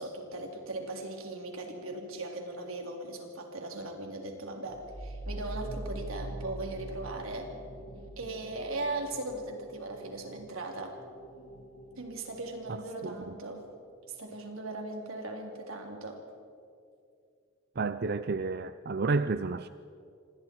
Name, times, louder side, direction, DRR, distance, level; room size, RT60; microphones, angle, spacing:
voice 1, 0.0-7.5 8.2-11.0 12.0-13.7 14.1-16.2, right 2 dB, 85° right, 1 dB, 3.6 m, -38 dB
sound 1, 4.7-14.0, right 1 dB, 60° left, 4.7 m, -44 dB
voice 2, 13.0-13.4 17.8-19.7, right 4 dB, 50° right, 12 dB, 0.5 m, -31 dB
26.5 x 26.0 x 4.7 m, 2.4 s
head